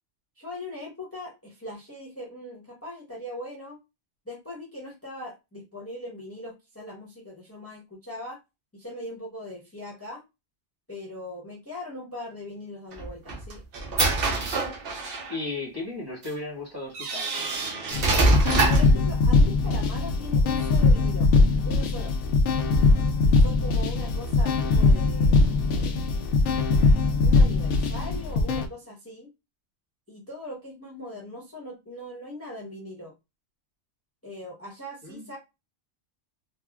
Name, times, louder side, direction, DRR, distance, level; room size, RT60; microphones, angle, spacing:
voice 1, 0.4-3.8 4.3-8.4 8.7-10.2 10.9-13.6 18.7-21.3 21.6-22.1 23.2-25.3 25.7-26.1 27.2-29.3 30.1-33.1 34.2-35.4, left 1 dB, 15° left, 0.8 m, -40 dB
sound 1, 12.9-15.4 16.2-16.3 16.9-19.0, right 2 dB, 55° right, 0.8 m, -25 dB
voice 2, 15.3-17.3 35.0-35.3, left 3 dB, 20° right, 1.2 m, -35 dB
sound 2, 17.9-28.7, left 3 dB, 75° left, 0.9 m, -21 dB
3.5 x 2.1 x 2.3 m
omnidirectional pair, 1.2 m